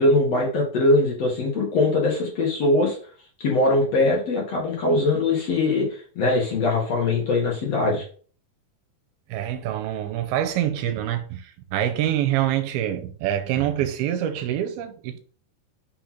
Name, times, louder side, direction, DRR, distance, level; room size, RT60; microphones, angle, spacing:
voice 1, 0.0-3.0 3.4-8.1, left 2 dB, 55° left, 2.1 m, -21 dB
voice 2, 9.3-15.2, right 11 dB, 85° right, 2.6 m, -25 dB
6.1 x 3.3 x 5.8 m
omnidirectional pair, 4.5 m